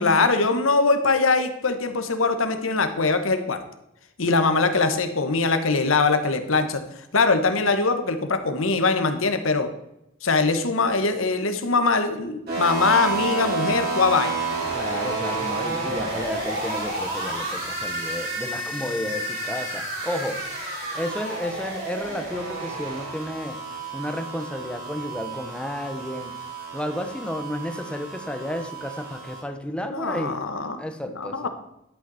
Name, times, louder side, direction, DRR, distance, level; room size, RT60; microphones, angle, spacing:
voice 1, 0.0-3.6 4.2-9.7 10.2-14.5 29.9-30.9 31.2-31.5, left 3 dB, 80° left, 8 dB, 1.3 m, -22 dB
sound 1, 12.5-29.4, right 2 dB, 50° right, 4.3 m, -30 dB
voice 2, 14.7-20.4 20.9-23.6 23.9-26.4 26.7-31.5, equal, 5° left, 7 dB, 0.9 m, -32 dB
11.5 x 8.2 x 4.2 m, 0.85 s
head